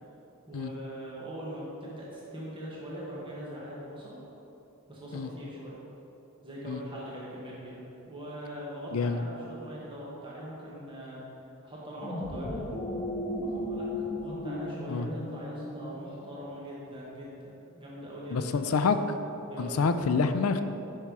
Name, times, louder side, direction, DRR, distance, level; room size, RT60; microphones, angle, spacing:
voice 1, 0.5-4.2 4.9-5.8 6.4-11.2 11.6-12.6 13.4-18.7 19.5-19.8, equal, 20° right, -6 dB, 1.3 m, -42 dB
voice 2, 8.9-9.2 14.9-15.1 18.3-19.0 19.6-20.6, left 5 dB, 70° left, 9 dB, 0.4 m, -27 dB
sound 1, 11.9-16.5, left 1 dB, 15° left, 0.5 m, -35 dB
7.3 x 5.6 x 4.8 m, 3.0 s
head